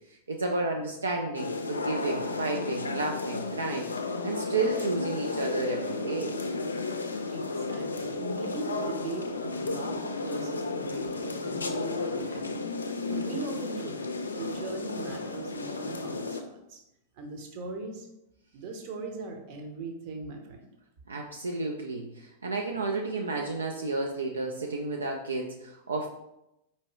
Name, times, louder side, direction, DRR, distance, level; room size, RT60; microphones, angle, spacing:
voice 1, 0.3-3.9 4.2-6.4 21.1-26.1, right 3 dB, 80° right, 1 dB, 0.4 m, -31 dB
sound 1, 1.3-16.4, left 3 dB, 80° left, 0.4 m, -33 dB
voice 2, 7.3-12.6 13.1-16.8 17.2-18.1 18.5-20.7, right 3 dB, 45° right, 3 dB, 0.8 m, -39 dB
4.4 x 2.8 x 3.1 m, 0.87 s
figure-of-eight pair, 95°, 0 cm